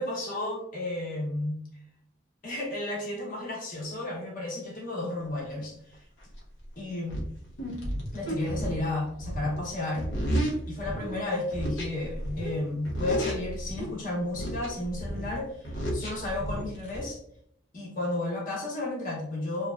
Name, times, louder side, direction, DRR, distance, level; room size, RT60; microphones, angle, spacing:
voice 1, 0.0-1.6 2.4-6.0 6.8-7.2 8.1-10.1 10.7-17.2 17.7-19.7, left 2 dB, 40° left, -3 dB, 0.9 m, -33 dB
sound 1, 6.4-6.5 7.1-11.2 11.5-12.6 12.9-13.9 14.3-17.0, equal, 85° left, 0.8 m, -32 dB
2.9 x 2.3 x 2.4 m, 0.72 s
head